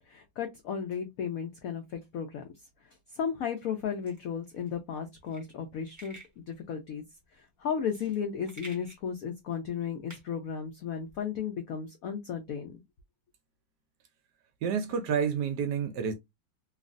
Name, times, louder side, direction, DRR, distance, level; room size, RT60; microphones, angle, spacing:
voice 1, 0.0-2.4 3.1-7.0 7.3-12.7, left 7 dB, 80° left, 0.7 m, -34 dB
sound 1, 4.0-11.2, right 1 dB, 20° right, 0.5 m, -53 dB
voice 2, 14.6-16.1, right 7 dB, 70° right, 1.0 m, -29 dB
3.1 x 2.4 x 2.5 m
omnidirectional pair, 2.1 m